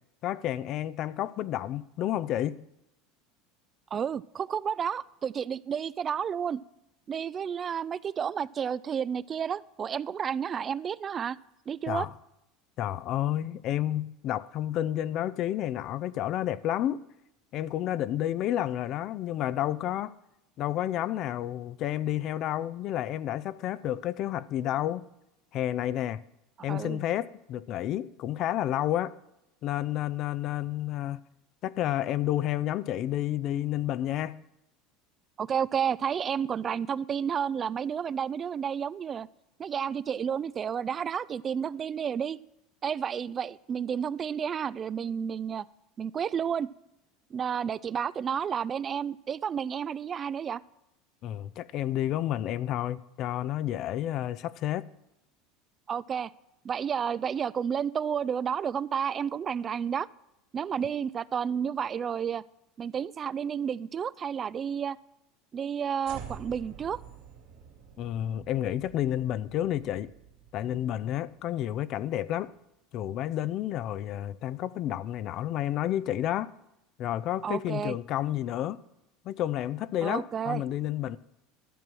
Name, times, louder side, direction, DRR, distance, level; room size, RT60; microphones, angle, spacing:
voice 1, 0.2-2.6 11.9-12.1 12.8-17.0 17.5-20.1 20.6-25.1 25.5-26.2 26.6-29.2 29.6-31.2 31.6-34.4 51.2-54.9 68.0-70.1 70.5-72.5 72.9-76.5 77.0-78.8 79.2-81.2, left 12 dB, 50° left, 0.5 m, -30 dB
voice 2, 3.9-6.6 7.1-11.4 11.7-12.1 26.7-27.0 35.4-39.3 39.6-42.4 42.8-45.6 46.0-46.7 47.3-50.6 55.9-56.3 56.6-60.1 60.5-62.4 62.8-65.0 65.5-67.0 77.4-78.0 80.0-80.6, right 7 dB, 30° right, 0.3 m, -31 dB
sound 1, 66.0-72.3, right 7 dB, 80° right, 2.5 m, -49 dB
12.5 x 7.3 x 6.2 m
supercardioid pair, 110°, 0 cm